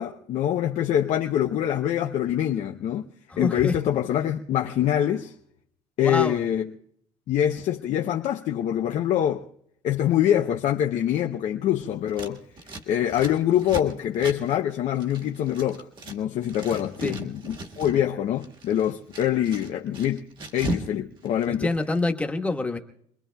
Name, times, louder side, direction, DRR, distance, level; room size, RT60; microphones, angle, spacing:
voice 1, 0.0-3.1 3.4-5.3 6.0-6.7 7.3-9.5 9.8-12.4 12.9-20.3 20.5-21.7, left 11 dB, 60° left, 0.7 m, -25 dB
voice 2, 3.3-3.8 6.0-6.4 17.0-17.2 21.5-22.8, left 2 dB, 10° left, 1.2 m, -26 dB
Scissors, 12.1-16.2 16.4-18.0 18.3-20.9 21.2-22.1, right 2 dB, 40° right, 1.6 m, -37 dB
27.5 x 21.5 x 2.3 m
cardioid pair, 130°, 13 cm